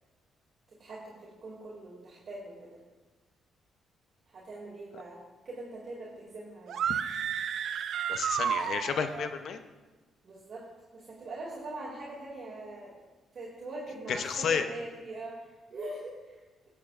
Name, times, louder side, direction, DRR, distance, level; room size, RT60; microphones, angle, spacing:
voice 1, 0.8-2.8 4.3-6.7 10.2-10.7 10.9-13.0 13.3-16.4, right 2 dB, 50° right, -6 dB, 2.4 m, -42 dB
sound 1, 6.7-9.3, right 8 dB, 70° right, 0.5 m, -31 dB
voice 2, 8.1-9.6 14.1-14.6, left 6 dB, 65° left, 8 dB, 0.6 m, -31 dB
16.0 x 8.2 x 2.5 m, 1.3 s
cardioid pair, 90°, 0 cm